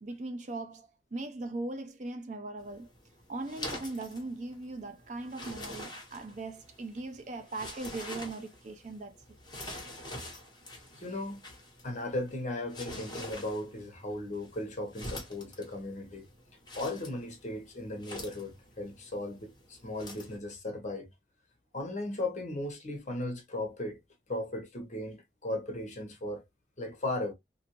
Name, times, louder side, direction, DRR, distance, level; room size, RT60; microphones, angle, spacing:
voice 1, 0.0-2.9 3.3-9.1, right 2 dB, 40° right, 0.5 m, -39 dB
sound 1, 2.6-20.4, left 1 dB, 25° left, 1.1 m, -46 dB
voice 2, 10.9-11.4 11.8-16.3 16.7-21.1 21.7-24.0 24.3-26.4 26.8-27.3, left 1 dB, 40° left, 0.9 m, -36 dB
2.7 x 2.5 x 2.8 m
head